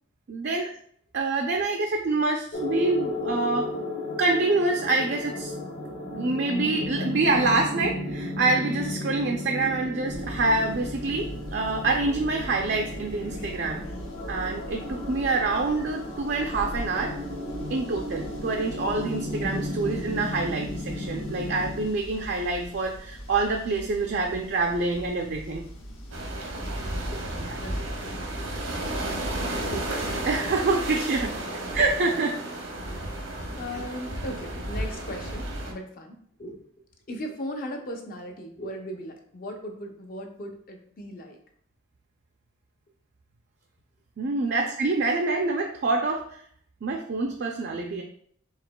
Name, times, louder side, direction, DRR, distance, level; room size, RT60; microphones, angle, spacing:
voice 1, 0.3-0.7 1.1-3.7 4.2-5.5 6.2-13.8 14.3-17.1 17.7-25.7 30.2-31.3 31.7-32.4 44.2-46.2 46.8-48.0, right 3 dB, 55° right, 2 dB, 0.4 m, -26 dB
sound 1, 2.5-21.9, left 1 dB, 65° left, 1.4 m, -34 dB
sound 2, 10.1-30.0, equal, 80° left, 0.8 m, -42 dB
sound 3, 26.1-35.7, right 1 dB, 85° right, 0.9 m, -32 dB
voice 2, 26.5-28.5 29.7-30.3 31.4-31.7 32.9-33.0 33.5-36.6 37.1-41.4, equal, 45° left, 3 dB, 0.6 m, -38 dB
4.8 x 3.4 x 2.2 m, 0.63 s
head